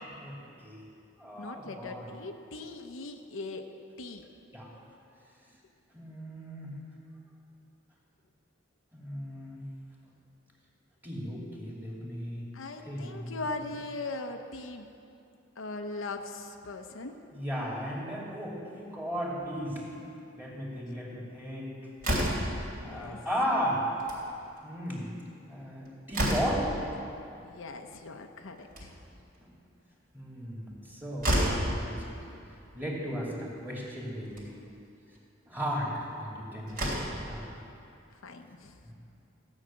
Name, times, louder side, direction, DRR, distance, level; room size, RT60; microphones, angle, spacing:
voice 1, 0.0-0.9 1.2-2.1 4.5-4.7 5.9-6.7 8.9-9.6 11.0-12.4 12.8-13.4 17.3-20.0 20.4-21.8 22.8-23.9 24.6-25.1 25.5-26.9 29.4-29.5 30.1-31.5 31.8-32.0 32.7-34.5 35.5-36.9 37.3-37.5 38.9-39.0, equal, 10° right, -4 dB, 2.6 m, -35 dB
voice 2, 1.4-3.7 4.0-4.3 12.5-14.9 15.6-17.2 22.8-23.3 27.4-28.9 38.2-38.8, left 3 dB, 80° left, 5 dB, 0.8 m, -40 dB
Slam, 22.0-22.6 23.9-24.2 24.6-24.7 24.9-25.0 25.6-26.7 28.5-29.2 30.8-30.9 31.2-31.7 32.8-32.9 33.3-33.4 34.2-34.5 36.2-36.3 36.7-37.3, equal, 50° right, 3.2 m, -29 dB
15.0 x 6.5 x 8.7 m, 2.6 s
head